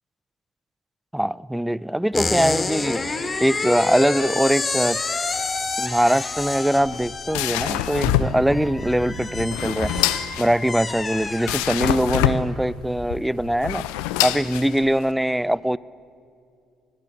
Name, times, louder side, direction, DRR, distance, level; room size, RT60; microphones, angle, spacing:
voice 1, 1.1-3.0 3.4-5.0 5.8-9.9 10.4-13.8 14.2-15.8, right 1 dB, 5° right, 22 dB, 0.7 m, -22 dB
sound 1, 2.1-12.1, left 3 dB, 30° left, 2.9 m, -29 dB
sound 2, 6.8-15.1, left 12 dB, 75° left, 1.0 m, -26 dB
sound 3, 8.0-10.2, right 2 dB, 25° right, 2.9 m, -32 dB
26.5 x 21.0 x 9.6 m, 2.5 s
hypercardioid pair, 50°, 0 cm